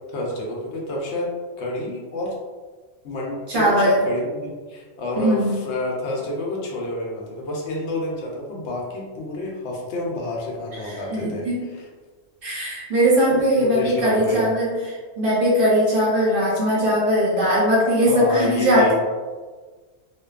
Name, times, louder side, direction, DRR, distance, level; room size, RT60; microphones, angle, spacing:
voice 1, 0.1-1.3 1.6-2.3 3.0-11.4 13.6-14.5 18.1-18.9, left 1 dB, 70° left, -2 dB, 0.8 m, -29 dB
voice 2, 3.5-4.0 5.2-5.6 10.8-11.6 12.4-18.9, equal, 55° right, -6 dB, 0.8 m, -20 dB
2.5 x 2.2 x 2.3 m, 1.4 s
omnidirectional pair, 1.2 m